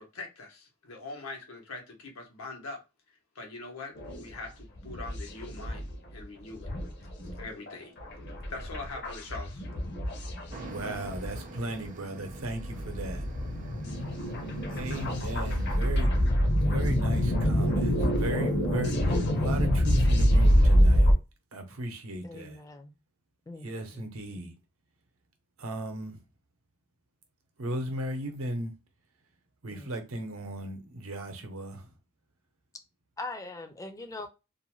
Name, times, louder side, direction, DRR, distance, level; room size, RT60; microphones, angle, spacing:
voice 1, 0.0-2.8 3.3-3.9 4.2-5.9 6.1-6.7 7.3-7.9 8.5-9.7, left 3 dB, 85° left, 1.0 m, -42 dB
sound 1, 4.0-4.3 4.8-5.9 6.2-6.3 6.5-11.4 11.8-11.9 12.4-21.1, equal, 50° left, 0.7 m, -26 dB
sound 2, 10.5-15.8, right 2 dB, 40° right, 0.6 m, -45 dB
voice 2, 10.7-13.3 14.7-16.2 16.6-21.1 21.5-22.6 23.6-24.5 25.6-26.2 27.6-28.7 29.6-31.9, right 1 dB, 80° right, 0.7 m, -36 dB
voice 3, 22.2-22.9 23.5-23.7 23.9-24.1 29.7-29.9 33.2-34.3, left 2 dB, 15° left, 0.4 m, -41 dB
2.5 x 2.1 x 3.0 m
head